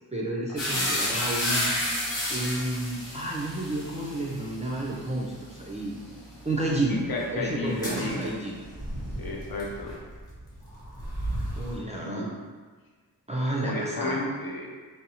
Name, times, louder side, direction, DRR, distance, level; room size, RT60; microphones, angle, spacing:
voice 1, 0.1-2.0 2.3-5.9 6.4-7.1 7.3-8.6 11.6-12.3 13.3-14.2, right 1 dB, 20° right, -5 dB, 0.3 m, -31 dB
sound 1, 0.6-8.5 8.8-9.9, left 1 dB, 80° left, 0.8 m, -32 dB
voice 2, 0.7-1.1 6.9-8.2 9.2-10.0 12.0-12.3 13.6-14.8, left 2 dB, 55° left, -1 dB, 0.5 m, -33 dB
sound 2, 7.6-11.9, right 1 dB, 10° left, 0.9 m, -36 dB
2.6 x 2.0 x 2.7 m, 1.4 s
wide cardioid pair, 65°, 43 cm